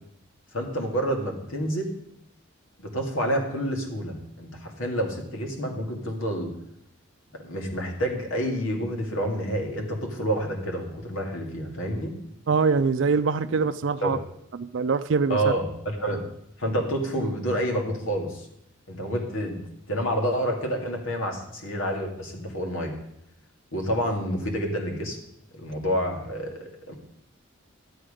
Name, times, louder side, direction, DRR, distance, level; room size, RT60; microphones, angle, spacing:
voice 1, 0.5-1.9 2.8-6.5 7.4-12.1 14.0-14.2 15.3-16.2 16.6-18.5 18.9-19.6 19.9-22.9 23.7-25.2 25.5-26.9, equal, 90° left, 2 dB, 2.1 m, -28 dB
voice 2, 12.5-14.2 14.5-15.5, right 5 dB, 65° right, 10 dB, 0.4 m, -23 dB
12.0 x 7.8 x 5.0 m, 0.76 s
head